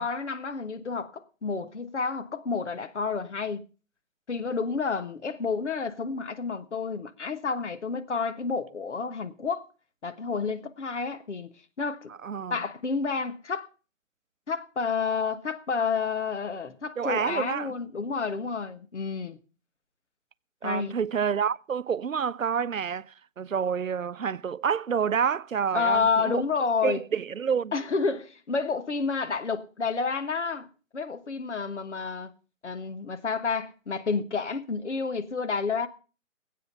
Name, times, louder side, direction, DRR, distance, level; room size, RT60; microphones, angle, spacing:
voice 1, 0.0-3.6 4.3-9.7 10.0-12.1 12.5-13.7 14.5-19.4 20.6-20.9 25.7-27.0 27.7-30.7 30.9-32.3 32.6-35.9, left 5 dB, 60° left, 1.4 m, -30 dB
voice 2, 12.2-12.6 17.0-17.7 20.6-26.4 26.8-27.7, right 7 dB, 80° right, 0.6 m, -28 dB
20.0 x 8.3 x 5.5 m
figure-of-eight pair, 145°, 39 cm